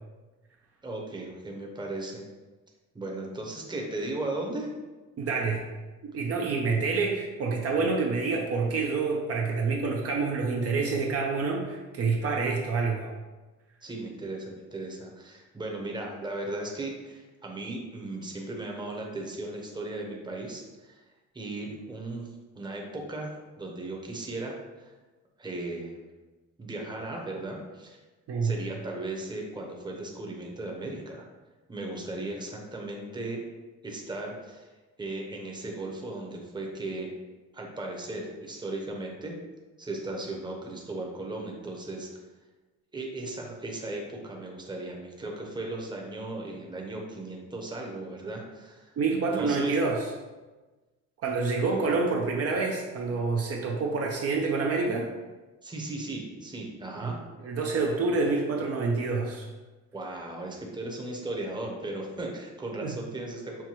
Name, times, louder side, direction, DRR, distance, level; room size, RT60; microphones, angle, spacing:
voice 1, 0.8-2.2 2.9-4.7 13.8-21.0 21.3-22.3 22.5-24.9 25.4-26.0 26.6-28.0 28.4-31.3 31.7-33.4 33.8-34.7 35.0-37.1 37.5-39.3 39.8-42.1 42.9-49.8 51.7-51.9 55.6-57.2 59.9-63.6, right 2 dB, 15° right, 0 dB, 0.8 m, -36 dB
voice 2, 5.2-5.7 6.1-13.1 28.3-28.5 49.0-50.1 51.2-55.1 57.0-57.1 57.4-59.5 62.8-63.0, right 4 dB, 55° right, 0 dB, 0.6 m, -27 dB
5.8 x 2.1 x 3.0 m, 1.2 s
cardioid pair, 90°, 30 cm